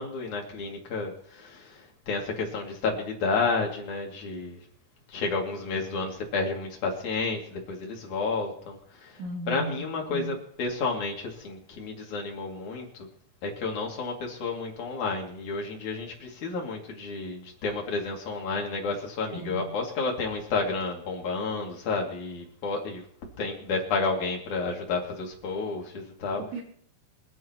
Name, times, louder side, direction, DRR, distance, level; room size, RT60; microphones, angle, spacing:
voice 1, 0.0-4.6 5.1-13.1 13.4-23.0 23.4-26.4, left 4 dB, 50° left, 0 dB, 3.5 m, -31 dB
voice 2, 9.2-10.3 19.3-19.7 26.4-26.6, right 1 dB, 90° right, -2 dB, 4.7 m, -36 dB
26.0 x 9.6 x 3.0 m, 0.64 s
omnidirectional pair, 5.1 m